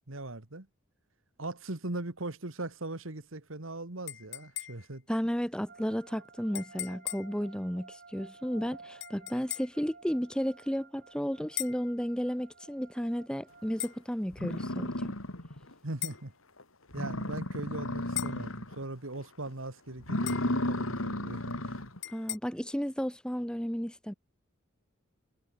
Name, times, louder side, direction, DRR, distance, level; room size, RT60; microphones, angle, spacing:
voice 1, 0.1-0.7 1.4-5.0 15.8-16.3 16.9-21.8, right 2 dB, 65° right, 2.1 m, -40 dB
sound 1, 4.1-5.0 6.5-7.4 9.0-9.8 11.6-11.9 13.8-14.0 16.0-16.3 18.2-18.5 20.3-20.6 22.0-22.4, left 14 dB, 60° left, 4.9 m, -39 dB
voice 2, 5.1-15.1 22.1-24.1, equal, 5° left, 1.6 m, -33 dB
sound 2, 5.7-14.1, right 4 dB, 50° right, 6.6 m, -54 dB
sound 3, 13.9-14.0 14.3-15.7 16.1-16.2 16.6-16.7 16.9-18.8 19.2-19.5 20.0-22.0, left 1 dB, 75° left, 3.9 m, -34 dB
head